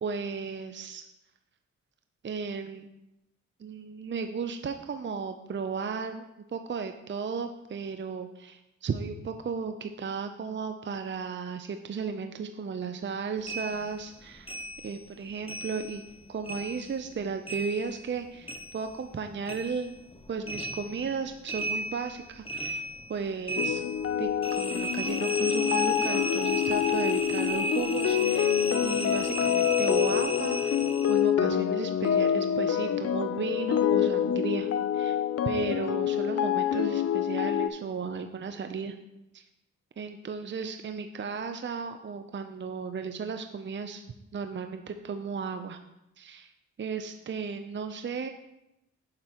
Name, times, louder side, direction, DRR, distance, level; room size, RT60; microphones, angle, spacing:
voice 1, 0.0-1.1 2.2-2.9 3.6-14.6 14.8-16.0 16.3-20.0 20.3-22.8 23.1-23.8 24.2-28.5 28.8-30.8 31.0-35.2 35.5-38.9 39.3-39.5 40.0-44.0 44.3-45.8 46.2-46.5 46.8-48.3, right 5 dB, 35° right, 7 dB, 0.6 m, -35 dB
sound 1, 13.5-16.2 16.4-19.2 19.5-31.3, equal, 20° left, 0.9 m, -35 dB
sound 2, 23.6-37.7, left 9 dB, 50° left, 0.6 m, -27 dB
7.5 x 7.3 x 3.0 m, 0.91 s
supercardioid pair, 50°, 32 cm